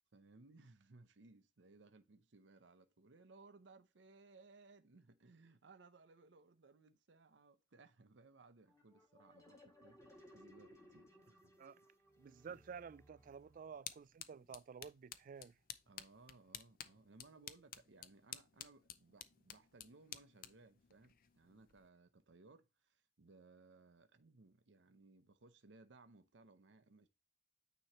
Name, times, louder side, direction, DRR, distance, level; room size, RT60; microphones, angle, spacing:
voice 1, 0.1-11.5 12.5-12.6 15.9-27.1, right 3 dB, 75° right, 0.7 m, -63 dB
sound 1, 8.7-14.1, left 1 dB, 15° left, 1.8 m, -64 dB
voice 2, 12.2-15.5, right 6 dB, 45° right, 0.3 m, -52 dB
sound 2, 13.2-21.9, left 10 dB, 50° left, 0.6 m, -54 dB
9.1 x 3.1 x 4.2 m
head